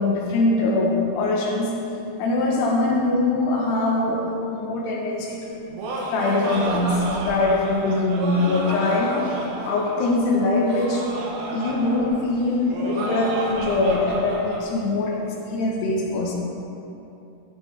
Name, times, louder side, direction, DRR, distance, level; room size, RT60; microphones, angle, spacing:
voice 1, 0.0-5.7 6.1-9.4 9.6-11.2 11.5-16.3, left 2 dB, 80° left, -1 dB, 3.1 m, -23 dB
Laughter, 5.5-14.6, right 2 dB, 70° right, 2.8 m, -31 dB
12.5 x 9.7 x 3.5 m, 2.8 s
omnidirectional pair, 4.9 m